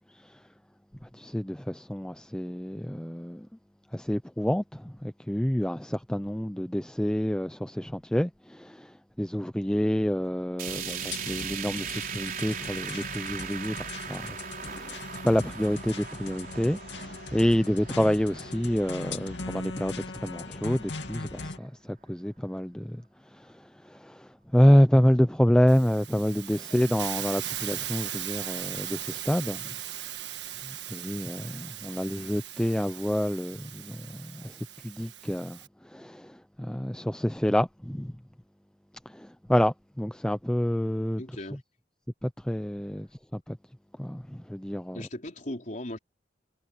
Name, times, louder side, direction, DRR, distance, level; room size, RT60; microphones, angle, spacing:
voice 1, 1.1-3.5 3.9-23.0 23.3-29.7 30.6-35.6 35.8-38.1 39.1-41.2 42.2-43.6 44.0-45.0, equal, 5° left, 0.5 m, -28 dB
sound 1, 10.6-20.7 21.1-21.2 21.6-21.7 22.6-22.7, right 8 dB, 50° right, 4.3 m, -39 dB
sound 2, 10.7-21.6, left 3 dB, 90° left, 2.5 m, -39 dB
Hiss, 25.7-35.7, right 12 dB, 80° right, 1.5 m, -38 dB
voice 2, 41.2-41.6 44.9-46.0, left 1 dB, 45° left, 4.1 m, -38 dB
head